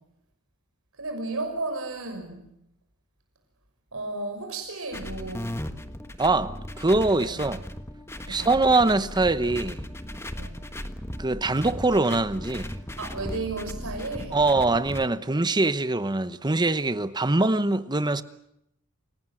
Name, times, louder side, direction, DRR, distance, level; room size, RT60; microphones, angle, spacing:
voice 1, 1.0-2.4 3.9-5.5 7.2-7.3 8.3-8.6 10.4-10.6 13.0-14.4, right 2 dB, 65° right, 6.1 m, -33 dB
sound 1, 4.9-15.0, left 1 dB, 10° left, 1.4 m, -37 dB
voice 2, 6.2-7.6 8.3-9.8 11.2-12.8 14.3-18.2, right 2 dB, 20° right, 1.0 m, -23 dB
28.5 x 18.0 x 7.8 m
head